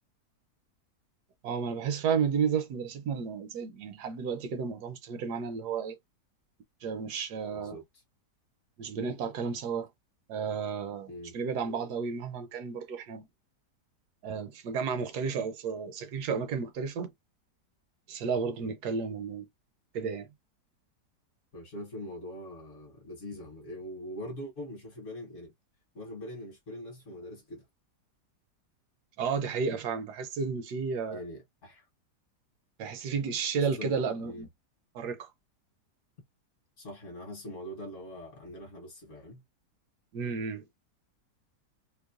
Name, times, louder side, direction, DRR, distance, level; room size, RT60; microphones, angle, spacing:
voice 1, 1.4-6.0 6.8-7.8 8.8-9.9 10.3-13.2 14.2-17.1 18.1-19.5 19.9-20.3 29.2-31.2 32.8-34.5 34.9-35.3 40.1-40.6, right 6 dB, 75° right, 1.1 m, -32 dB
voice 2, 21.5-25.5 25.9-27.6 31.1-31.8 33.8-34.5 36.8-39.4, left 1 dB, 55° left, 1.1 m, -42 dB
2.9 x 2.1 x 2.3 m
omnidirectional pair, 1.8 m